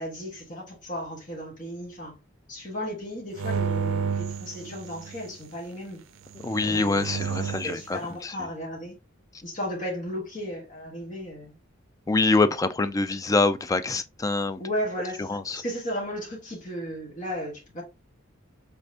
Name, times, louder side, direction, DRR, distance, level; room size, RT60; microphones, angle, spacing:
voice 1, 0.0-2.2 2.5-6.0 6.6-9.0 9.4-11.6 14.6-17.8, equal, 40° left, 1.5 m, -35 dB
sound 1, 3.4-5.3 6.3-7.8, right 6 dB, 80° right, 0.5 m, -31 dB
voice 2, 6.4-8.3 12.1-14.6 15.2-15.6, left 3 dB, 15° left, 0.3 m, -25 dB
5.3 x 3.3 x 2.8 m
head